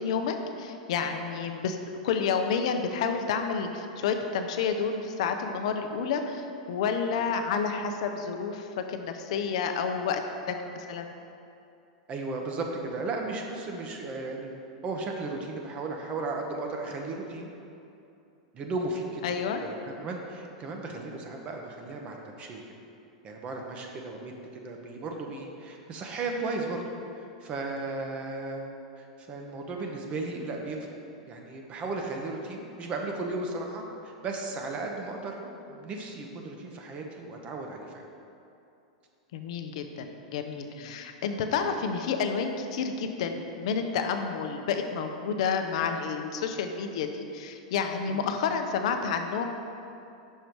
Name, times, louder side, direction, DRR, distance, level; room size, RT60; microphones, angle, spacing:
voice 1, 0.0-1.8 2.0-10.2 10.5-11.1 19.2-19.6 39.3-49.4, left 6 dB, 65° left, 6 dB, 0.6 m, -30 dB
voice 2, 12.1-14.5 14.8-17.5 18.5-19.2 19.6-22.6 23.2-26.8 27.2-28.6 29.0-30.8 31.3-38.0 40.7-41.0 48.1-48.3, right 3 dB, 35° right, 2 dB, 0.8 m, -35 dB
5.4 x 5.0 x 4.6 m, 2.7 s
hypercardioid pair, 110°, 4 cm